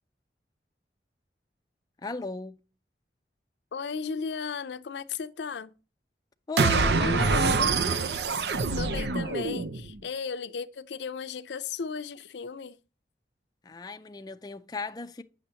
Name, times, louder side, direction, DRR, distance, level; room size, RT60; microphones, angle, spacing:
voice 1, 2.0-2.6 6.5-8.0 13.6-15.2, left 3 dB, 20° left, 0.4 m, -35 dB
voice 2, 3.7-5.7 8.8-12.8, left 5 dB, 80° left, 0.5 m, -35 dB
sound 1, 6.6-9.9, right 4 dB, 75° right, 0.6 m, -25 dB
8.1 x 6.3 x 2.8 m
head